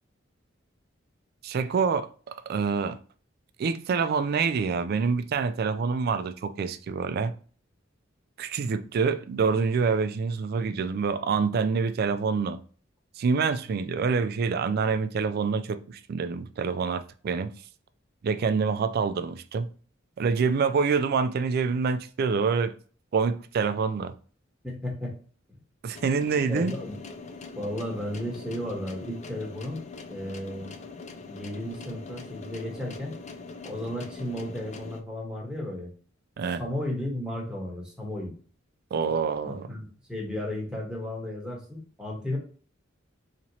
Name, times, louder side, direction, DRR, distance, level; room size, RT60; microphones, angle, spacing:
voice 1, 1.4-3.0 3.6-7.3 8.4-12.6 13.2-17.5 18.2-19.7 20.2-22.7 23.1-24.1 25.8-26.7 36.4-36.6 38.9-39.7, right 5 dB, 50° right, 0.3 m, -26 dB
voice 2, 24.6-25.1 26.5-27.0 27.5-29.8 30.1-30.7 31.2-33.1 33.6-35.9 36.6-38.3 39.4-42.4, left 1 dB, 5° right, 1.1 m, -34 dB
sound 1, 25.9-35.0, left 4 dB, 35° left, 0.4 m, -42 dB
4.3 x 2.9 x 2.7 m
head